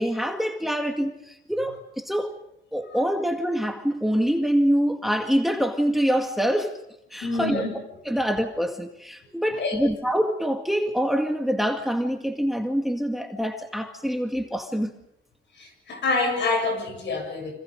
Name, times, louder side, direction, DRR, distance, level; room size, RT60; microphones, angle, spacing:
voice 1, 0.0-2.3 2.7-6.7 7.1-7.6 8.1-14.9, equal, ahead, 5 dB, 2.0 m, -25 dB
voice 2, 7.2-7.7 9.6-9.9 15.6-17.5, left 3 dB, 65° left, 4 dB, 7.9 m, -27 dB
29.0 x 26.5 x 5.3 m, 0.78 s
cardioid pair, 90°, 20 cm